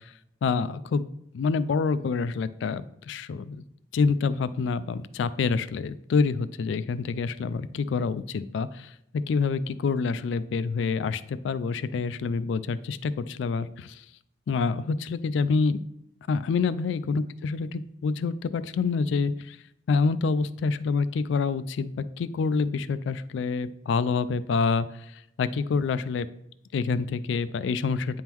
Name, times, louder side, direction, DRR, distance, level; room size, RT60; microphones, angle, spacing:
voice 1, 0.4-1.1 1.3-2.8 3.1-3.6 3.9-8.7 9.3-13.9 14.5-15.8 16.3-19.6 19.9-24.9 25.4-26.3 26.7-28.2, left 4 dB, 75° left, 14 dB, 0.3 m, -27 dB
9.2 x 3.7 x 3.0 m, 0.78 s
head